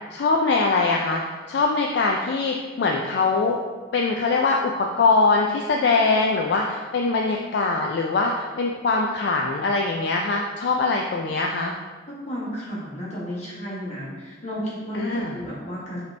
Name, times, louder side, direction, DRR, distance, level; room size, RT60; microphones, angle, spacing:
voice 1, 0.1-3.6 3.9-11.7 14.9-15.3, left 3 dB, 60° left, 0 dB, 0.3 m, -22 dB
voice 2, 12.1-16.0, equal, 35° left, -7 dB, 1.3 m, -32 dB
5.0 x 2.9 x 3.3 m, 1.4 s
head